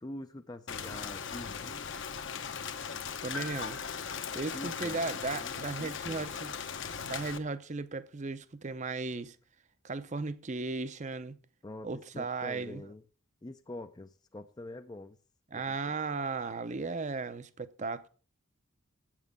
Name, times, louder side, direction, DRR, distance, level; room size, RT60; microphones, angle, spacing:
voice 1, 0.0-1.9 4.5-5.1 5.4-6.3 11.6-11.9 12.1-13.0 13.4-15.2 15.5-15.9, left 1 dB, 20° left, 0.4 m, -45 dB
Rain, 0.7-7.4, left 6 dB, 60° left, 0.9 m, -39 dB
voice 2, 3.2-6.5 7.0-9.4 9.8-11.4 11.8-12.8 15.5-18.1, right 3 dB, 35° right, 0.6 m, -36 dB
Piano, 3.3-7.5 8.7-8.8, left 3 dB, 85° left, 1.7 m, -49 dB
8.3 x 7.4 x 6.6 m
head